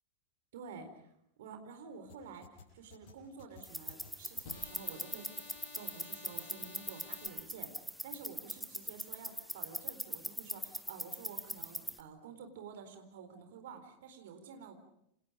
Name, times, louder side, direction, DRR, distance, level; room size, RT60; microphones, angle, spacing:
voice 1, 0.5-14.8, right 5 dB, 55° right, 7 dB, 4.2 m, -50 dB
sound 1, 2.1-7.3, left 5 dB, 50° left, 7.7 m, -53 dB
sound 2, 3.6-12.0, equal, ahead, 1.2 m, -42 dB
29.0 x 27.0 x 5.1 m, 0.75 s
figure-of-eight pair, 90°, 0 cm